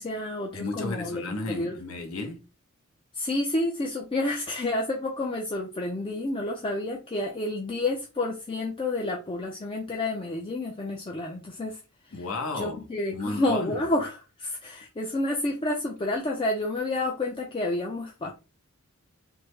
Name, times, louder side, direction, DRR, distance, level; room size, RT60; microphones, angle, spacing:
voice 1, 0.0-1.8 3.1-11.8 12.5-18.3, left 2 dB, 25° left, 0.4 m, -29 dB
voice 2, 0.5-2.4 12.1-12.8 13.1-13.8, left 3 dB, 70° left, 0.7 m, -33 dB
3.4 x 2.0 x 3.2 m
head